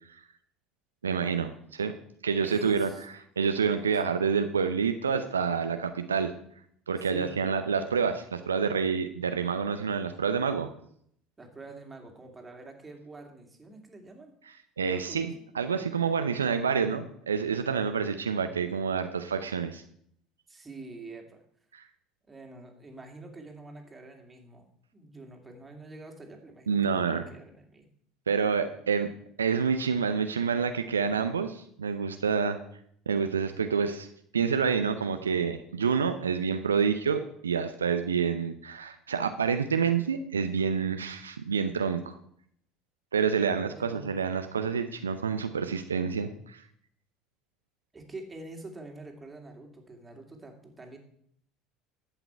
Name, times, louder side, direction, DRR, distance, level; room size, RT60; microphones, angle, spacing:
voice 1, 1.0-1.9 2.2-2.9 3.4-6.3 6.9-10.7 14.8-15.3 15.5-19.8 21.7-21.8 26.7-27.3 28.3-29.1 29.4-32.6 33.1-34.1 34.3-42.2 43.1-46.6, right 6 dB, 85° right, 8 dB, 0.5 m, -28 dB
voice 2, 2.4-3.0 3.6-3.9 7.0-7.7 11.4-14.3 14.9-15.3 20.5-21.4 22.3-24.7 24.9-27.9 43.6-44.1 47.9-51.0, right 2 dB, 20° right, 2 dB, 2.6 m, -46 dB
11.5 x 8.1 x 4.6 m, 0.67 s
figure-of-eight pair, 65°, 0 cm